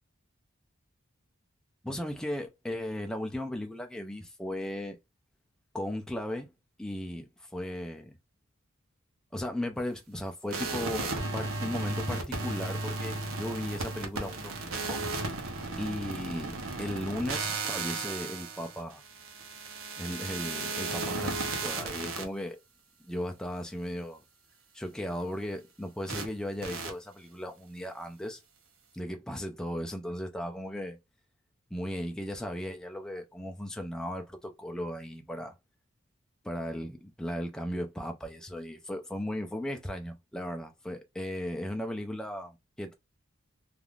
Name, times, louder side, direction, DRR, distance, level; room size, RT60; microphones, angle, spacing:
voice 1, 1.8-5.0 5.7-6.5 6.8-8.2 9.3-15.0 15.8-19.0 20.0-22.6 23.0-24.2 24.7-28.4 28.9-31.0 31.7-35.6 36.4-42.9, left 1 dB, 5° left, 0.3 m, -36 dB
sound 1, 10.5-22.2 26.1-26.3 26.6-26.9, right 3 dB, 70° right, 0.7 m, -35 dB
3.4 x 2.4 x 2.3 m
head